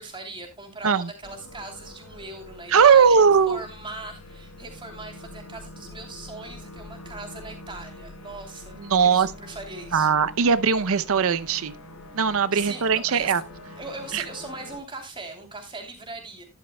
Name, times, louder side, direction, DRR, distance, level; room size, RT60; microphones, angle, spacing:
voice 1, 0.0-10.1 12.5-13.3 13.7-16.4, right 3 dB, 20° right, 3.1 m, -39 dB
sound 1, 1.2-14.8, left 2 dB, 80° left, 4.2 m, -44 dB
voice 2, 2.7-3.6 8.8-9.3 9.9-11.7 12.1-13.4 14.1-14.2, right 6 dB, 65° right, 0.6 m, -19 dB
12.0 x 11.0 x 2.2 m
head